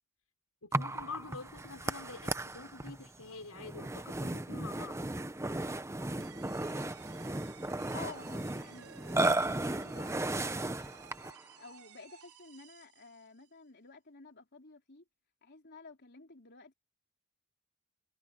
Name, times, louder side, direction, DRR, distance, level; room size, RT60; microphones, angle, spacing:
voice 1, 0.6-5.0, left 4 dB, 85° left, 5.6 m, -46 dB
Burping eructation, 0.7-11.4, right 2 dB, 15° right, 0.8 m, -35 dB
sound 1, 6.2-13.5, right 7 dB, 90° right, 4.6 m, -57 dB
voice 2, 7.9-8.9 9.4-10.1 11.5-15.0 15.4-16.7, left 4 dB, 50° left, 3.7 m, -51 dB
head